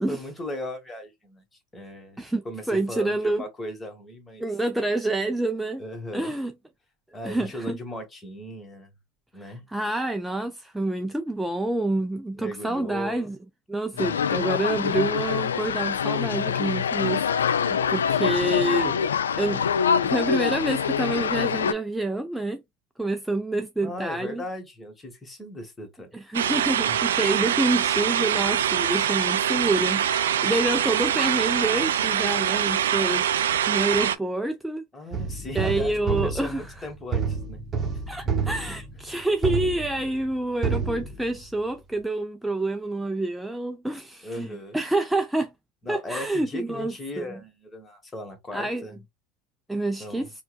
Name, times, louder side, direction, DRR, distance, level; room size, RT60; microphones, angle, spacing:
voice 1, 0.1-1.4 1.7-4.4 5.8-6.3 7.1-8.9 9.3-9.7 12.4-13.3 13.9-14.4 23.8-26.1 26.9-27.0 34.9-37.6 37.9-38.0 39.1-39.2 44.2-44.8 45.8-49.0 50.0-50.3, left 1 dB, 20° left, 1.4 m, -37 dB
voice 2, 2.2-3.4 4.4-5.8 6.1-6.5 7.2-7.8 9.4-13.4 13.7-19.0 19.4-19.6 20.0-22.6 23.0-24.4 26.1-33.3 33.7-34.8 35.5-36.9 38.1-44.5 44.7-45.5 45.9-47.3 48.5-48.8 49.7-50.3, right 2 dB, 5° right, 0.4 m, -27 dB
sound 1, 14.0-21.7, left 7 dB, 85° left, 0.3 m, -25 dB
sound 2, 26.3-34.2, right 9 dB, 80° right, 0.4 m, -24 dB
sound 3, 35.1-40.4 40.6-41.7, right 5 dB, 30° right, 0.9 m, -29 dB
4.4 x 2.3 x 2.4 m
hypercardioid pair, 85°, 0 cm